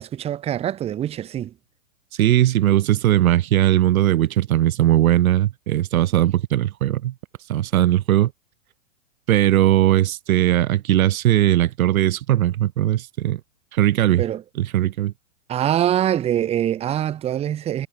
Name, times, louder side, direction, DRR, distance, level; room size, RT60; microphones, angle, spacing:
voice 1, 0.0-1.5 14.2-14.4 15.5-17.9, right 11 dB, 15° right, 0.8 m, -24 dB
voice 2, 2.2-7.1 7.5-8.3 9.3-13.4 13.7-14.2 14.6-15.1, right 13 dB, 85° right, 0.6 m, -19 dB
hypercardioid pair, 135°, 41 cm